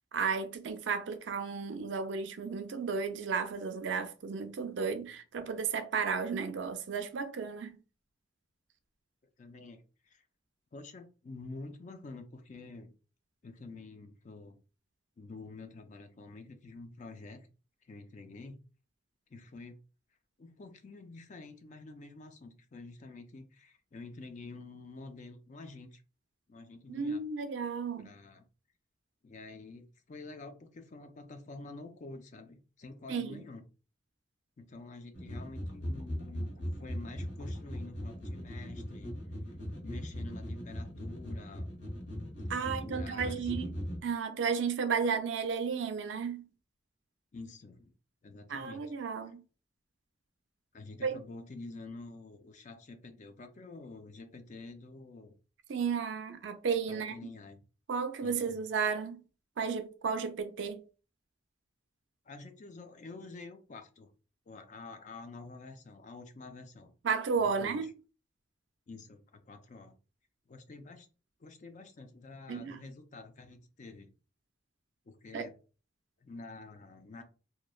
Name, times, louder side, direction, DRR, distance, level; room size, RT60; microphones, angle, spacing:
voice 1, 0.1-7.8 26.9-28.1 33.1-33.4 42.5-43.7 44.0-46.5 48.5-49.4 51.0-51.2 55.7-57.1 57.9-59.2 59.6-60.8 67.0-67.9 72.5-72.8 75.3-75.4, right 5 dB, 65° right, 0.4 m, -33 dB
voice 2, 9.4-10.2 10.7-12.9 13.4-14.6 15.2-17.5 17.8-18.6 19.3-19.8 20.4-26.0 26.5-27.2 28.0-28.4 29.2-33.6 34.6-36.5 36.8-39.1 39.8-41.7 42.6-43.5 47.3-47.9 48.2-48.8 50.7-55.3 56.9-57.6 58.2-58.6 62.3-64.1 64.5-66.9 67.4-67.9 68.9-69.9 70.5-71.1 71.4-74.1 75.1-75.6 76.2-77.2, left 3 dB, 40° left, 0.4 m, -48 dB
sound 1, 35.1-44.0, equal, 70° left, 1.2 m, -39 dB
3.0 x 2.2 x 2.3 m
head